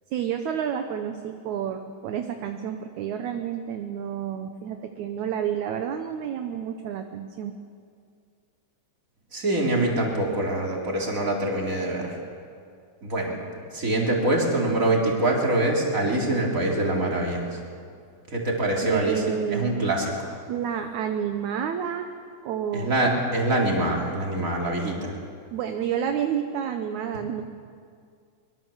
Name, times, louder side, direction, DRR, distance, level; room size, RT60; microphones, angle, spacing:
voice 1, 0.1-7.5 18.8-19.7 20.5-22.1 22.4-22.9 25.5-27.4, right 9 dB, 70° right, 6 dB, 2.2 m, -29 dB
voice 2, 9.3-12.2 13.0-13.4 13.7-17.6 18.3-19.2 19.5-20.3 22.7-25.1, right 1 dB, 25° right, -2 dB, 4.1 m, -24 dB
24.0 x 23.5 x 7.4 m, 2.2 s
omnidirectional pair, 3.8 m